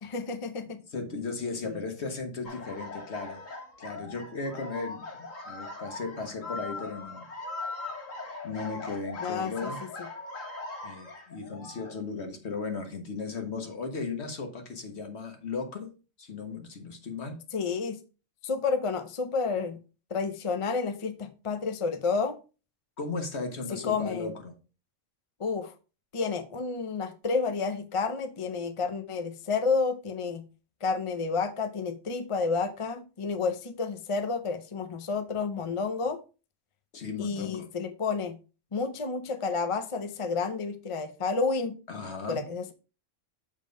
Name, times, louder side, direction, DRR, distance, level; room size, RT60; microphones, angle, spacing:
voice 1, 0.0-0.8 1.6-1.7 9.2-9.7 17.5-18.0 18.4-19.8 20.1-22.4 23.7-24.3 25.4-25.7 26.1-30.4 30.8-36.2 37.2-38.3 38.7-41.8 42.3-42.7, left 4 dB, 35° left, 9 dB, 0.5 m, -30 dB
voice 2, 0.9-3.4 3.8-7.3 8.4-9.8 10.8-15.9 16.2-17.4 23.0-24.5 36.9-37.7 41.9-42.4, left 4 dB, 60° left, 5 dB, 1.5 m, -36 dB
sound 1, 2.4-12.0, left 3 dB, 90° left, 1.8 m, -40 dB
7.4 x 3.7 x 5.1 m, 0.33 s
omnidirectional pair, 1.3 m